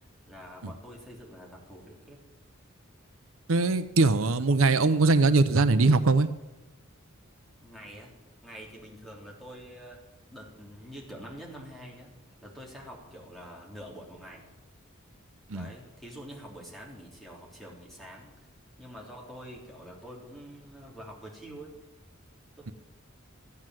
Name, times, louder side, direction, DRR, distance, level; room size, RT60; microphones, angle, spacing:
voice 1, 0.3-2.2 7.6-8.2 8.4-10.0 10.3-12.1 12.4-14.5 15.5-18.3 18.8-21.8 22.6-22.7, equal, ahead, -3 dB, 3.3 m, -46 dB
voice 2, 3.5-6.3 15.5-15.7, right 3 dB, 80° right, 11 dB, 0.7 m, -21 dB
14.0 x 9.6 x 7.6 m, 1.0 s
head